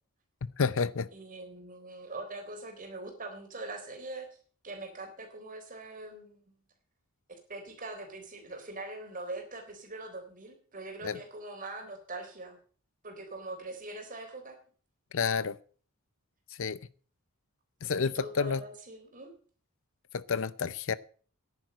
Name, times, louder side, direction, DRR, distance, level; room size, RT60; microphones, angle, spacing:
voice 1, 0.6-1.1 11.0-11.2 15.1-15.6 16.6-16.8 17.8-18.6 20.1-20.9, left 5 dB, 60° left, 0.6 m, -29 dB
voice 2, 1.1-4.3 4.6-6.4 7.3-12.6 13.0-14.6 18.0-19.3, right 2 dB, 35° right, 3.8 m, -42 dB
10.5 x 9.3 x 7.7 m
head